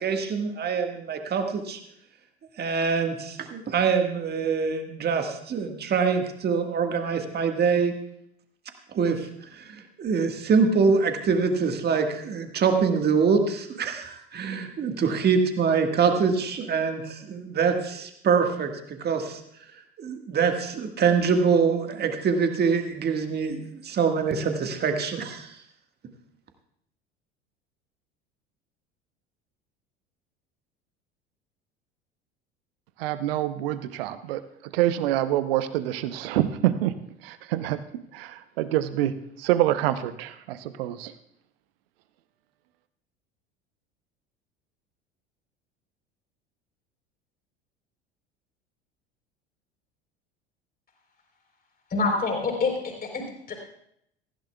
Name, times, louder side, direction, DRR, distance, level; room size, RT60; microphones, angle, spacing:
voice 1, 0.0-1.8 2.6-7.9 8.9-9.2 10.0-18.7 19.0-19.4 20.0-25.5, right 5 dB, 30° right, 5 dB, 1.7 m, -24 dB
voice 2, 33.0-36.9 37.2-39.1 39.4-41.1, right 13 dB, 60° right, 13 dB, 0.9 m, -26 dB
voice 3, 51.9-53.6, left 3 dB, 30° left, 2 dB, 3.9 m, -27 dB
18.0 x 15.0 x 2.3 m, 0.74 s
figure-of-eight pair, 70°, 33 cm